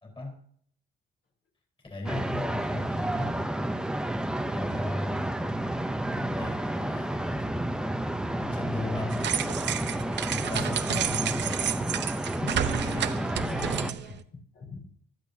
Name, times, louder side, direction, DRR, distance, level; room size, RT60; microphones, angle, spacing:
voice 1, 0.0-0.4 1.8-3.4 4.5-5.3 6.1-7.6 8.4-9.3 10.3-11.6, left 2 dB, 25° left, 2 dB, 3.9 m, -36 dB
sound 1, 2.0-13.9, right 1 dB, 5° right, 0.7 m, -31 dB
sound 2, 9.1-14.2, right 10 dB, 60° right, 0.7 m, -31 dB
voice 2, 12.4-14.2 14.5-14.8, left 3 dB, 60° left, 0 dB, 4.2 m, -39 dB
15.5 x 12.0 x 2.7 m, 0.62 s
cardioid pair, 90°, 20 cm